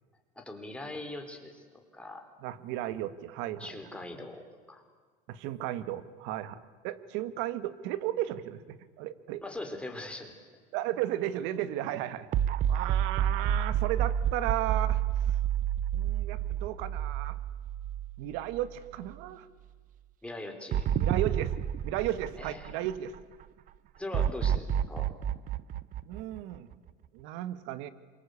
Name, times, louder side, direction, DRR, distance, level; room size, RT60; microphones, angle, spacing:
voice 1, 0.4-2.2 3.6-4.4 4.7-4.8 9.4-10.4 20.2-20.9 22.4-22.8 24.0-25.1, left 2 dB, 5° left, 3 dB, 4.2 m, -41 dB
voice 2, 2.4-3.8 5.3-6.6 6.8-9.4 10.7-12.3 12.7-15.0 15.9-17.4 18.2-19.5 21.0-21.5 21.8-23.1 26.0-26.7 27.1-27.9, right 13 dB, 70° right, 14 dB, 1.7 m, -34 dB
sound 1, 12.3-18.7 19.0-19.1 20.7-23.2 24.1-26.9, right 10 dB, 45° right, 0.8 m, -29 dB
27.5 x 24.0 x 8.4 m, 1.5 s
cardioid pair, 130°, 20 cm